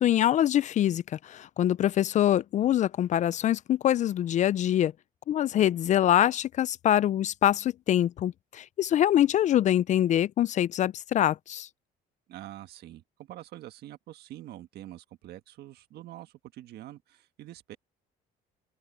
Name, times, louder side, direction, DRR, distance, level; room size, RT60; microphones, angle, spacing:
voice 1, 0.0-4.9 5.3-11.7, left 11 dB, 45° left, 0.4 m, -24 dB
voice 2, 12.3-17.8, right 14 dB, 70° right, 1.6 m, -45 dB
open air
cardioid pair, 110°, 17 cm